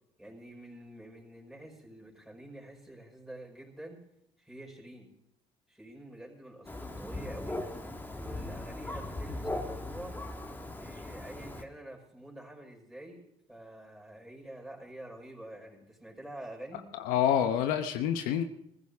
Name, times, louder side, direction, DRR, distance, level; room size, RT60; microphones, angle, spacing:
voice 1, 0.2-4.0 4.4-5.1 5.7-7.6 8.1-10.1 10.8-16.8, right 1 dB, ahead, 0 dB, 5.7 m, -47 dB
Thunder, 6.6-11.6, left 1 dB, 15° left, 1.7 m, -39 dB
voice 2, 16.9-18.4, left 9 dB, 80° left, 8 dB, 1.0 m, -27 dB
19.5 x 15.0 x 3.6 m, 0.77 s
supercardioid pair, 65°, 14 cm